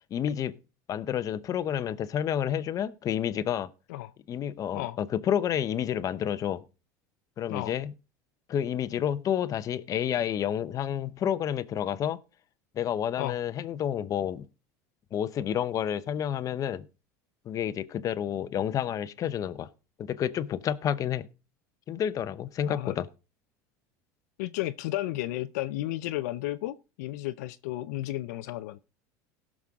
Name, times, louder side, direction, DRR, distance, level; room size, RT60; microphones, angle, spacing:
voice 1, 0.1-0.5 0.9-3.7 4.3-6.6 7.4-7.9 8.5-12.2 12.8-14.4 15.1-16.9 17.5-19.7 20.0-21.3 21.9-23.1, left 9 dB, 40° left, 0.8 m, -29 dB
voice 2, 24.4-28.8, left 16 dB, 80° left, 0.6 m, -33 dB
17.5 x 6.3 x 3.6 m
supercardioid pair, 105°, 9 cm